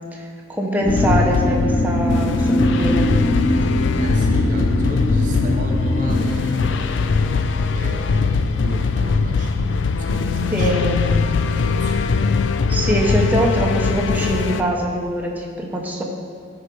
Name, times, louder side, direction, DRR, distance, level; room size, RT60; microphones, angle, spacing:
voice 1, 0.1-3.1 10.5-11.0 12.7-16.0, equal, 10° right, -1 dB, 0.9 m, -23 dB
sound 1, 0.8-6.3, equal, 25° left, 1.3 m, -22 dB
sound 2, 0.9-14.6, left 4 dB, 65° left, 0.4 m, -21 dB
voice 2, 4.0-7.1 7.7-12.3, right 2 dB, 40° right, 1 dB, 0.7 m, -35 dB
13.0 x 4.8 x 4.6 m, 2.2 s
head